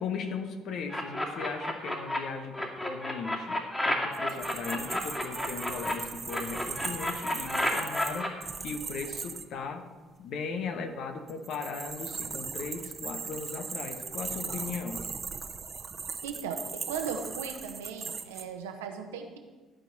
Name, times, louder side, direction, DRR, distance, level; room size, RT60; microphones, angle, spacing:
voice 1, 0.0-9.9 10.2-15.0, left 5 dB, 55° left, 6 dB, 1.3 m, -37 dB
sound 1, 0.9-2.2 2.5-5.9 6.3-8.3, left 1 dB, 15° left, 2.4 m, -31 dB
sound 2, 4.1-9.4 11.3-18.4, right 5 dB, 35° right, 1.0 m, -39 dB
voice 2, 16.2-19.4, right 6 dB, 75° right, 5 dB, 1.1 m, -37 dB
13.5 x 5.2 x 7.7 m, 1.3 s
figure-of-eight pair, 50°, 0 cm